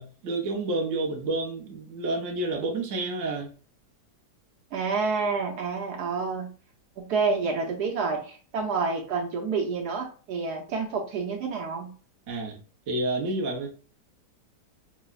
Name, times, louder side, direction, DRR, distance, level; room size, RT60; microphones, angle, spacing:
voice 1, 0.0-3.5 12.3-12.6 12.9-13.7, right 2 dB, 55° right, 1.1 m, -29 dB
voice 2, 4.7-6.5 7.0-11.9, right 4 dB, 75° right, 1.4 m, -28 dB
5.5 x 2.1 x 2.3 m
omnidirectional pair, 1.8 m